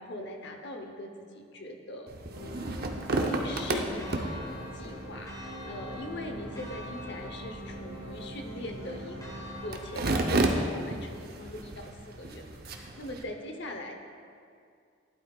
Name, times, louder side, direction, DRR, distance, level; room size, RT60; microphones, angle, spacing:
voice 1, 0.0-2.6 3.1-4.4 4.7-9.2 9.6-13.9, left 1 dB, 60° left, 4 dB, 0.9 m, -41 dB
sound 1, 2.1-13.2, right 2 dB, 50° right, 0.7 m, -34 dB
sound 2, 2.3-10.7, equal, 80° right, 2.6 m, -44 dB
Church bell, 4.0-10.5, left 1 dB, 20° left, 1.2 m, -47 dB
12.5 x 11.5 x 2.4 m, 2.3 s
head